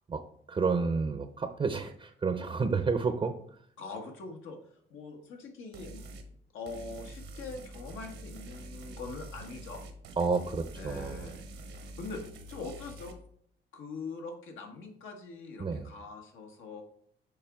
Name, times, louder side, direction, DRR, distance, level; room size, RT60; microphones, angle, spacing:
voice 1, 0.1-3.3 10.2-11.3 15.6-15.9, right 4 dB, 25° right, 7 dB, 0.6 m, -30 dB
voice 2, 3.8-4.6 4.9-6.0 6.5-9.8 10.7-12.2 12.5-13.2 13.7-16.8, left 3 dB, 80° left, 3 dB, 1.4 m, -43 dB
sound 1, 5.7-6.3 6.7-13.1, right 1 dB, 80° right, 1.1 m, -46 dB
7.0 x 4.9 x 3.6 m, 0.64 s
cardioid pair, 90°, 20 cm